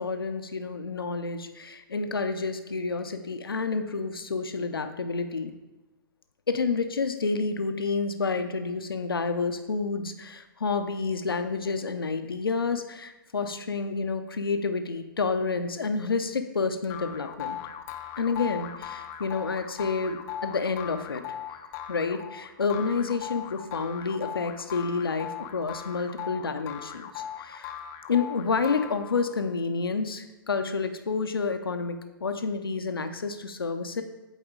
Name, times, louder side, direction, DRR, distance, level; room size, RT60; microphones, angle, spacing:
voice 1, 0.0-5.5 6.5-17.6 18.2-21.2 21.9-27.8 28.1-34.0, left 4 dB, 85° left, 8 dB, 0.5 m, -29 dB
sound 1, 16.9-29.4, left 9 dB, 30° left, 0.5 m, -39 dB
8.0 x 4.3 x 3.6 m, 1.1 s
figure-of-eight pair, 120°, 12 cm